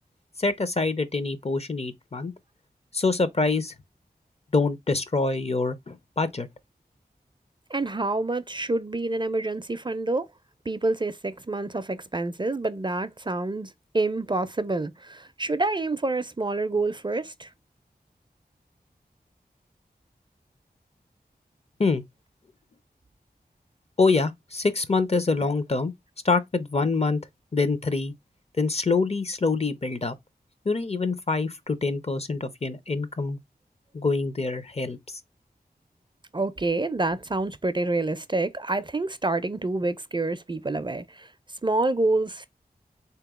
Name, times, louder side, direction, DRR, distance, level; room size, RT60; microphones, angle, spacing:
voice 1, 0.4-2.3 2.9-3.7 4.5-6.5 21.8-22.0 24.0-25.9 26.2-27.2 27.5-28.1 28.6-30.1 30.7-33.4 33.9-35.2, left 3 dB, 40° left, 0.6 m, -25 dB
voice 2, 7.7-10.3 10.7-17.5 36.3-41.3 41.6-42.5, right 2 dB, 30° right, 0.4 m, -27 dB
3.6 x 2.9 x 3.5 m
wide cardioid pair, 60°, 16 cm